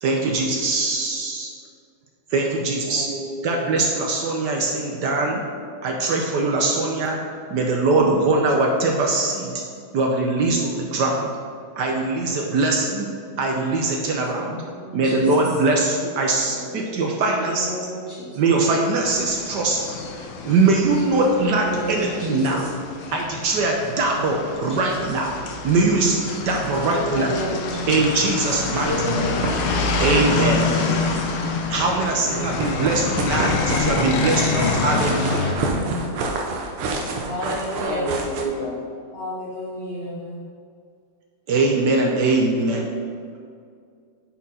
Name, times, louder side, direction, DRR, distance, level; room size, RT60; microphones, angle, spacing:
voice 1, 0.0-1.5 2.3-3.1 3.4-5.5 5.8-9.6 9.9-11.3 11.8-13.1 13.4-14.6 14.9-17.7 18.4-22.6 23.1-25.3 25.6-27.3 27.9-29.2 30.0-30.7 31.7-35.6 41.5-42.9, right 3 dB, 65° right, 1 dB, 1.2 m, -22 dB
voice 2, 2.8-4.0 16.2-17.1 21.6-22.4 29.6-31.0 32.2-32.9 37.8-38.8, right 2 dB, 30° right, -6 dB, 0.8 m, -33 dB
voice 3, 14.7-15.4 17.4-18.4 21.6-22.7 24.4-24.8 25.1-25.2 26.9-27.9 28.8-29.7 30.6-31.6 32.2-32.7 35.6-36.2 37.3-38.1 39.1-40.4, left 1 dB, 45° left, -6 dB, 0.8 m, -32 dB
sound 1, 19.0-35.5, left 4 dB, 80° left, 1.6 m, -27 dB
sound 2, 28.4-29.1 29.4-29.6 29.8-31.2 32.4-38.4, right 3 dB, 85° right, 1.7 m, -28 dB
10.0 x 4.4 x 4.2 m, 2.2 s
omnidirectional pair, 2.3 m